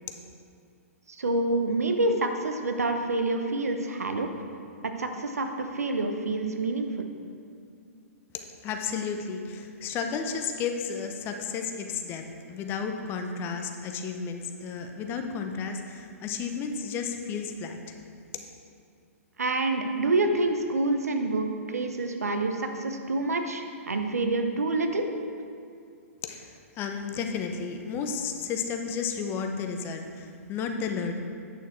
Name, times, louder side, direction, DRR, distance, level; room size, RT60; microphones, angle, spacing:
voice 1, 1.1-4.3 4.8-7.0 19.4-25.1, right 2 dB, 80° right, 6 dB, 0.8 m, -27 dB
voice 2, 8.3-18.0 26.2-31.1, left 6 dB, 25° left, 5 dB, 0.7 m, -33 dB
8.8 x 6.6 x 4.4 m, 2.4 s
figure-of-eight pair, 120°, 8 cm